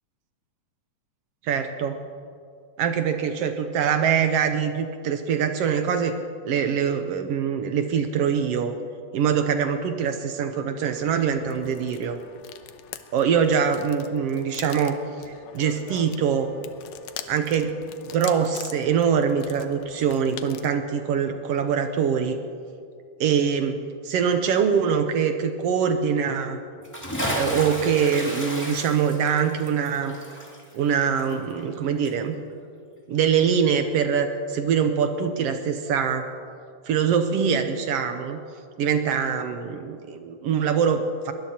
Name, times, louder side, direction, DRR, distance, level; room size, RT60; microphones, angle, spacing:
voice 1, 1.4-2.0 2.8-6.1 6.4-8.7 9.1-12.2 13.1-15.0 15.3-16.5 17.3-17.8 18.1-22.4 23.2-26.6 27.3-30.2 30.7-32.4 33.1-36.3 36.9-38.4 38.8-41.3, right 7 dB, 75° right, 7 dB, 1.4 m, -23 dB
sound 1, 10.9-20.8, left 10 dB, 90° left, 2.2 m, -43 dB
Bathtub (filling or washing) / Splash splatter, 26.8-31.8 32.0-32.1, equal, 5° left, 2.0 m, -32 dB
22.5 x 19.5 x 2.9 m, 2.3 s
omnidirectional pair, 3.6 m